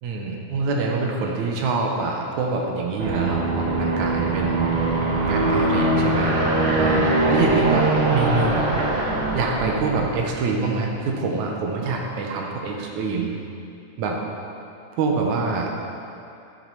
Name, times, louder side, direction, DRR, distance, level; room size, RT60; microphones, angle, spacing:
voice 1, 0.0-4.9 5.2-6.3 6.7-8.7 9.3-13.3 14.0-14.2 15.0-15.7, right 4 dB, 75° right, 0 dB, 2.4 m, -25 dB
Aircraft, 3.0-10.3, right 2 dB, 55° right, 1.6 m, -22 dB
9.5 x 7.7 x 5.6 m, 2.6 s
omnidirectional pair, 3.5 m